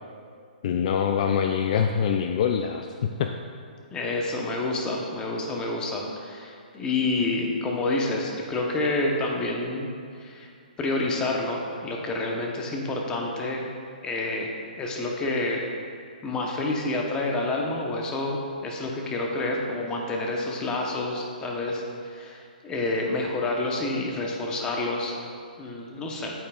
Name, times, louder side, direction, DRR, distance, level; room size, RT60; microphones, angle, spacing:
voice 1, 0.6-3.3, left 7 dB, 45° left, 5 dB, 0.4 m, -24 dB
voice 2, 3.9-9.9 10.2-10.5 10.8-13.7 14.0-14.5 14.8-15.7 16.2-25.1 25.6-26.3, left 2 dB, 15° left, 0 dB, 0.9 m, -28 dB
8.5 x 8.4 x 2.4 m, 2.2 s
hypercardioid pair, 145°, 5 cm